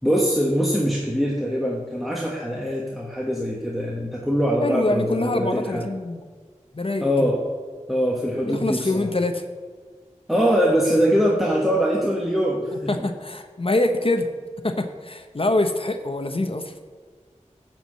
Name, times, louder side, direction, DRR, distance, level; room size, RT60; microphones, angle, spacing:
voice 1, 0.0-5.9 7.0-7.4 7.9-9.1 10.3-13.1, equal, ahead, -3 dB, 1.3 m, -23 dB
voice 2, 4.6-6.2 6.7-7.3 8.5-9.5 12.9-14.3 14.6-16.7, left 2 dB, 50° left, 7 dB, 0.8 m, -24 dB
11.0 x 4.6 x 7.4 m, 1.5 s
wide cardioid pair, 45°, 12 cm